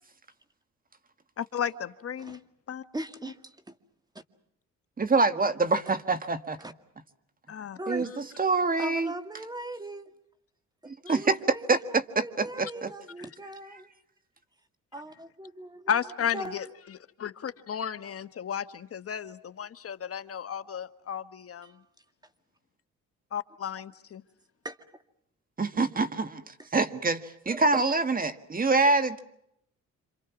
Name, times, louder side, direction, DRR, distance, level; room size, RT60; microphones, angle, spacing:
voice 1, 1.4-2.4 2.7-2.8 7.5-7.8 11.1-11.2 15.9-16.7 17.2-21.7 23.3-24.2, left 8 dB, 50° left, 12 dB, 1.2 m, -33 dB
voice 2, 2.9-3.8 6.6-6.7 7.8-8.1 8.8-10.1 10.8-13.9 14.9-16.0 16.3-16.7 21.6-21.9 24.6-25.0 25.7-25.9 26.6-26.7 27.5-27.8, right 1 dB, 15° right, 9 dB, 2.1 m, -40 dB
voice 3, 5.0-6.6 7.9-8.1 8.4-9.1 10.9-11.4 11.7-12.9 25.6-29.2, right 3 dB, 30° right, 11 dB, 1.7 m, -26 dB
27.5 x 27.5 x 6.0 m, 0.77 s
cardioid pair, 90°, 30 cm